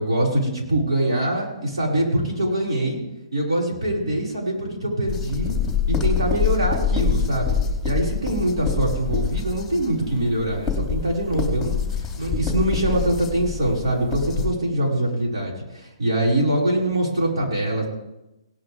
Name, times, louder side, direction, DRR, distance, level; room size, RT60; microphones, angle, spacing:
voice 1, 0.0-3.0 3.3-5.5 5.9-7.6 7.8-11.8 12.2-17.9, right 1 dB, 70° right, -3 dB, 5.4 m, -23 dB
sound 1, 5.1-14.5, left 6 dB, 5° left, 2.7 m, -25 dB
17.5 x 11.5 x 3.5 m, 0.94 s
hypercardioid pair, 135°, 3 cm